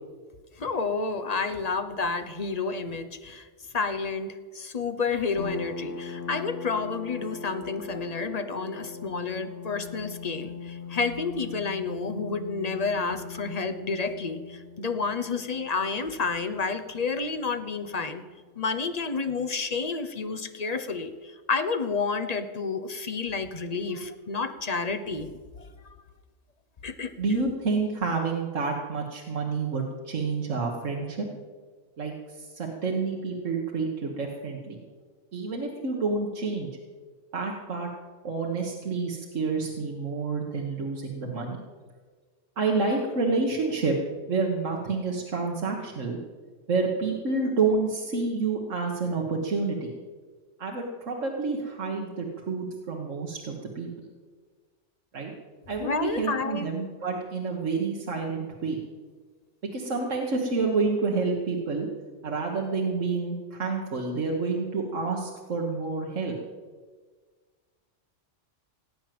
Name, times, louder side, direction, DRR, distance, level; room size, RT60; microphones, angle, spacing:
voice 1, 0.6-3.5 3.7-18.2 18.6-25.3 25.6-25.7 26.8-27.5 55.8-56.7, left 4 dB, 35° left, 9 dB, 1.1 m, -30 dB
sound 1, 5.4-18.6, left 5 dB, 65° left, 1.9 m, -41 dB
voice 2, 27.2-31.3 32.0-34.8 35.3-36.7 37.3-37.9 38.2-41.6 42.6-44.0 44.3-46.2 46.7-49.9 50.6-53.9 55.1-55.3 55.7-58.8 59.7-61.9 62.2-66.4, right 4 dB, 90° right, -1 dB, 1.9 m, -29 dB
18.0 x 9.3 x 7.7 m, 1.5 s
omnidirectional pair, 1.3 m